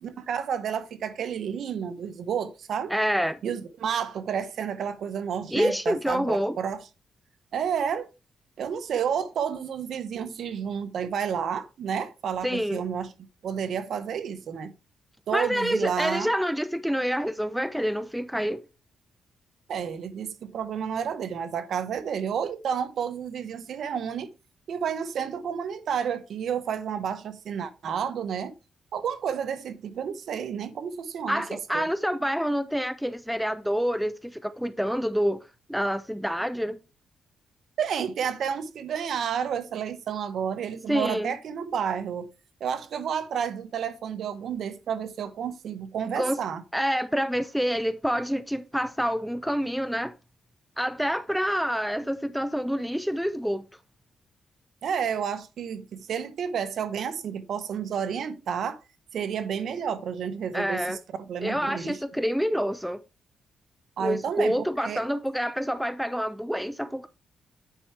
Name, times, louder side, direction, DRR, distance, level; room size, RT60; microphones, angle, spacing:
voice 1, 0.0-2.9 3.4-6.8 7.5-8.1 8.6-13.1 13.4-14.7 15.3-16.3 19.7-24.3 24.7-28.5 28.9-31.4 31.7-31.9 37.8-42.3 42.6-46.6 54.8-58.8 59.1-61.0 61.3-62.0 64.0-65.0, right 7 dB, 70° right, 1.0 m, -30 dB
voice 2, 2.9-3.4 5.5-6.6 12.4-12.8 15.3-18.6 31.3-35.4 35.7-36.8 40.9-41.3 46.2-46.4 46.7-50.1 50.8-53.6 60.5-61.0 61.4-63.0 64.0-67.1, equal, ahead, 0.5 m, -27 dB
9.4 x 4.7 x 4.3 m
cardioid pair, 105°, 0 cm